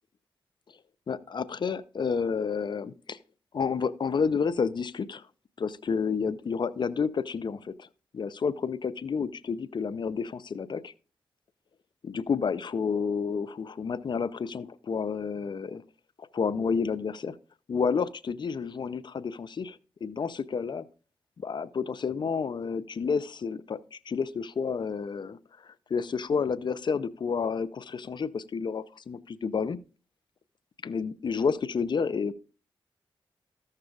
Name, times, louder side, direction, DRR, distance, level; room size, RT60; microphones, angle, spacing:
voice 1, 1.1-3.2 3.5-5.3 5.6-7.9 8.1-10.9 12.0-15.8 16.2-17.4 17.7-20.8 21.4-29.8 30.8-32.3, left 5 dB, 55° left, 0.5 m, -30 dB
14.5 x 6.5 x 2.4 m
cardioid pair, 45°, 9 cm